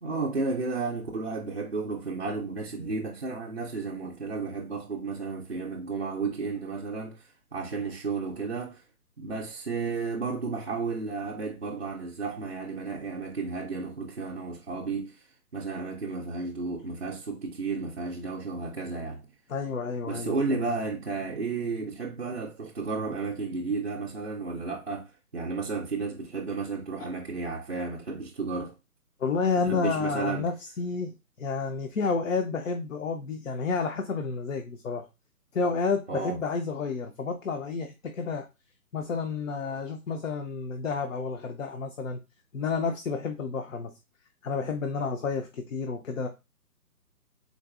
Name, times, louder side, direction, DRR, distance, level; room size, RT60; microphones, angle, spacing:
voice 1, 0.0-8.8 9.2-15.3 15.5-19.3 20.0-28.7 29.7-30.5 36.1-36.4, right 4 dB, 45° right, 0.4 m, -33 dB
voice 2, 19.5-20.6 29.2-35.1 35.5-38.5 38.9-42.2 42.5-43.9 44.4-46.3, left 4 dB, 60° left, 0.5 m, -30 dB
3.9 x 2.6 x 2.3 m
hypercardioid pair, 165°, 46 cm